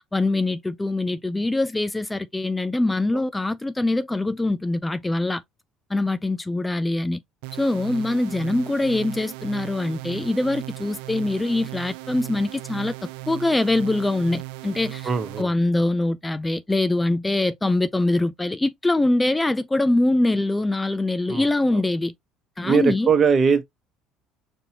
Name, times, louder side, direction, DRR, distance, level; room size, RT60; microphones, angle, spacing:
voice 1, 0.1-5.4 5.9-7.2 7.5-12.9 13.3-15.1 15.4-22.1 22.6-23.1, left 2 dB, 15° left, 0.5 m, -23 dB
sound 1, 7.4-15.4, right 20 dB, 80° right, 0.3 m, -37 dB
voice 2, 15.0-15.5 21.3-21.5 21.7-21.8 22.6-23.6, right 6 dB, 40° right, 1.0 m, -20 dB
5.3 x 2.8 x 2.8 m
hypercardioid pair, 70°, 0 cm